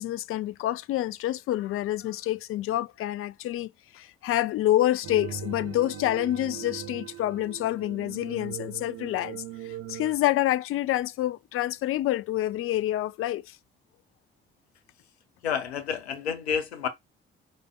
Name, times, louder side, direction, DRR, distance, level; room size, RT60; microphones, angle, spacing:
voice 1, 0.0-13.6, left 14 dB, 45° left, 0.4 m, -28 dB
sound 1, 5.0-10.2, right 9 dB, 50° right, 0.8 m, -40 dB
voice 2, 15.4-16.9, left 7 dB, 80° left, 0.7 m, -29 dB
4.9 x 3.9 x 2.2 m
figure-of-eight pair, 40°, 32 cm